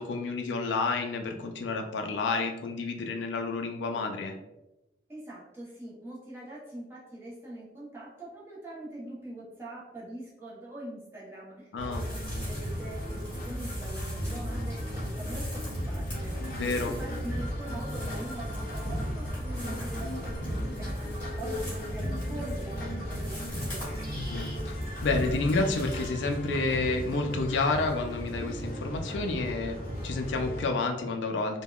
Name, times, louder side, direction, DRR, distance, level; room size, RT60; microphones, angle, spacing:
voice 1, 0.0-4.4 11.7-12.0 16.5-16.9 24.1-24.7 25.0-29.8 30.0-31.6, left 3 dB, 90° left, 4 dB, 0.4 m, -30 dB
voice 2, 5.1-23.9, right 1 dB, 15° right, -6 dB, 0.8 m, -43 dB
sound 1, 11.8-30.7, equal, 50° left, 0.7 m, -35 dB
sound 2, 11.9-26.1, equal, 10° left, 1.3 m, -40 dB
3.4 x 2.1 x 2.3 m, 0.97 s
head